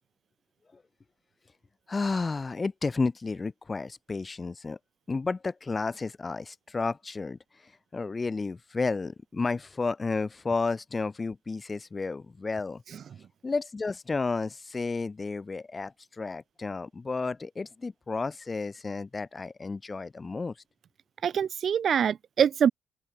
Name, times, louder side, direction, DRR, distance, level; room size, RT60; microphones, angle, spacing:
voice 1, 1.9-4.8 5.1-12.8 13.4-20.5, left 4 dB, 35° left, 2.0 m, -32 dB
voice 2, 21.2-22.7, right 8 dB, 55° right, 0.6 m, -24 dB
open air
hypercardioid pair, 40°, 0 cm